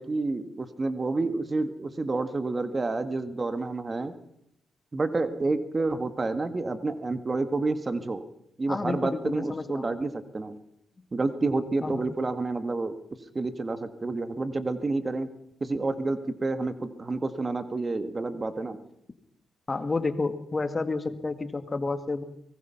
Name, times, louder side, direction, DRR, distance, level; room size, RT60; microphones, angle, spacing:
voice 1, 0.0-4.1 4.9-8.2 8.6-10.6 11.1-12.9 13.3-15.3 15.6-18.8, right 3 dB, 35° right, 10 dB, 1.7 m, -29 dB
voice 2, 8.7-9.9 11.8-12.0 19.7-22.2, left 3 dB, 30° left, 10 dB, 1.9 m, -30 dB
24.0 x 19.5 x 5.8 m, 0.75 s
cardioid pair, 70°, 0 cm